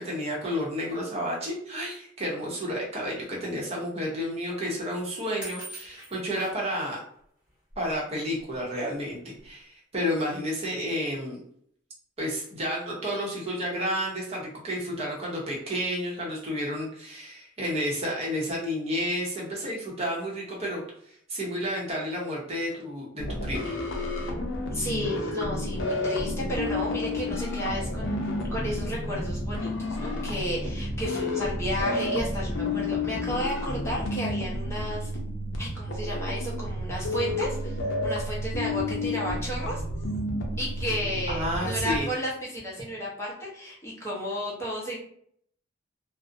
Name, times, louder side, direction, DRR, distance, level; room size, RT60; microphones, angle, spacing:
voice 1, 0.0-7.0 7.8-11.4 12.2-20.8 21.1-23.8 41.3-42.1, equal, 30° right, -3 dB, 0.7 m, -31 dB
sound 1, 5.4-6.6 7.7-7.9 8.6-8.7 8.9-9.3, equal, 5° right, 1.1 m, -42 dB
sound 2, 23.2-42.0, left 1 dB, 70° left, 0.5 m, -31 dB
voice 2, 24.7-28.2 28.5-35.1 35.6-39.8 40.6-45.0, equal, 15° left, -5 dB, 0.6 m, -33 dB
2.5 x 2.0 x 2.5 m, 0.65 s
head